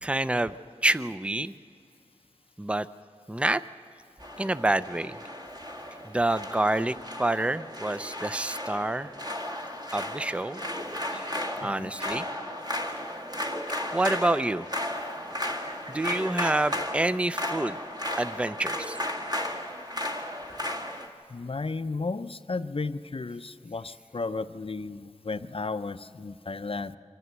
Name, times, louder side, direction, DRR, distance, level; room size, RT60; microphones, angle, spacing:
voice 1, 0.0-0.5 0.8-1.5 2.6-2.9 3.3-3.6 4.4-5.2 6.0-9.1 9.9-10.6 11.1-11.3 11.6-12.3 13.9-14.7 15.9-17.8 18.2-19.0, right 2 dB, 10° right, 14 dB, 0.5 m, -27 dB
sound 1, 4.2-21.1, left 1 dB, 35° right, 1.8 m, -34 dB
voice 2, 11.6-11.9 21.3-27.0, left 3 dB, 50° left, 12 dB, 0.6 m, -34 dB
24.5 x 14.0 x 8.1 m, 2.3 s
wide cardioid pair, 60°, 12 cm